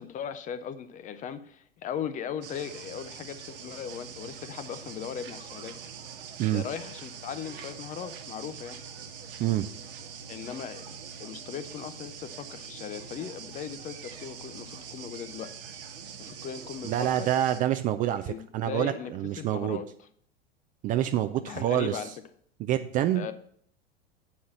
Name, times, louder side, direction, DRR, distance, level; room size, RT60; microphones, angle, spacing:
voice 1, 0.0-5.8 6.5-8.8 10.3-15.9 16.2-17.3 18.3-19.9 21.4-22.1 23.1-23.3, left 8 dB, 25° left, 12 dB, 0.6 m, -38 dB
sound 1, 2.4-17.6, right 6 dB, 60° right, 1.1 m, -44 dB
voice 2, 16.8-19.8 20.8-22.0 22.6-23.3, right 12 dB, 25° right, 10 dB, 0.4 m, -27 dB
8.4 x 4.2 x 6.9 m, 0.63 s
figure-of-eight pair, 85°, 30 cm